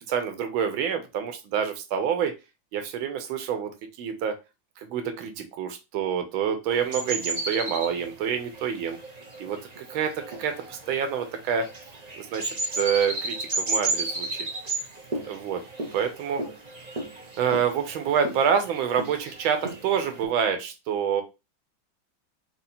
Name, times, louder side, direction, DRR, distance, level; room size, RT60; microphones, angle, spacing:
voice 1, 0.1-2.4 2.7-4.4 4.8-9.0 9.4-11.7 12.2-14.5 15.2-15.6 15.9-16.5 17.4-21.2, right 7 dB, 90° right, 7 dB, 1.6 m, -27 dB
sound 1, 6.7-20.3, right 2 dB, 40° right, 0.5 m, -34 dB
4.1 x 2.9 x 4.1 m, 0.26 s
omnidirectional pair, 2.1 m